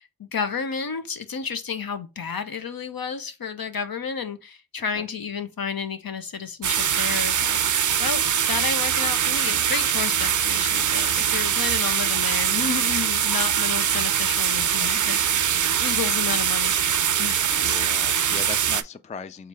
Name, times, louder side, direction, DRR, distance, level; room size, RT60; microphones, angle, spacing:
voice 1, 0.0-7.6 8.0-15.5 15.8-17.5, left 6 dB, 60° left, 0.8 m, -31 dB
sound 1, 6.6-18.8, right 8 dB, 50° right, 0.4 m, -23 dB
voice 2, 14.6-15.0 17.5-19.5, left 5 dB, 20° left, 0.3 m, -38 dB
3.8 x 3.2 x 3.2 m
cardioid pair, 45°, 40 cm